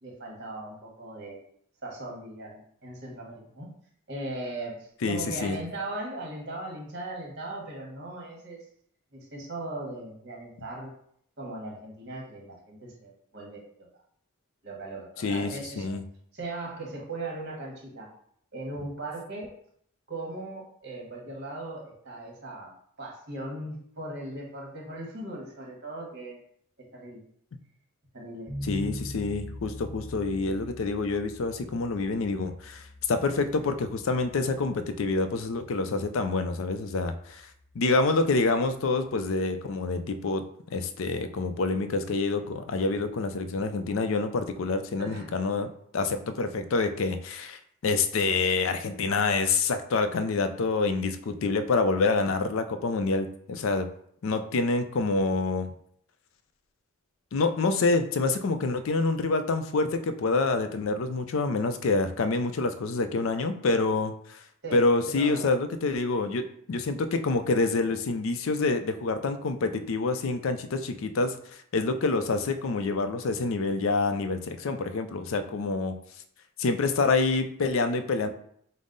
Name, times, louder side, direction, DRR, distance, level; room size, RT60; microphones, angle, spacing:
voice 1, 0.0-1.4 1.8-3.7 4.1-8.6 9.1-10.9 11.4-13.9 14.6-15.9 16.3-18.1 18.5-19.5 20.1-22.7 23.0-26.4 26.8-27.2 28.1-28.5 45.0-45.3 64.6-64.9 65.1-65.5, right 2 dB, 50° right, -1 dB, 1.2 m, -38 dB
voice 2, 5.0-5.6 15.2-16.0 28.6-37.4 37.7-40.4 40.7-45.7 45.9-53.9 54.2-55.7 57.3-64.4 64.7-66.4 66.7-71.4 71.7-75.9 76.6-78.3, left 3 dB, 60° left, 9 dB, 0.4 m, -27 dB
sound 1, 28.5-39.4, left 1 dB, 25° left, 0.6 m, -43 dB
5.3 x 2.0 x 3.8 m, 0.67 s
head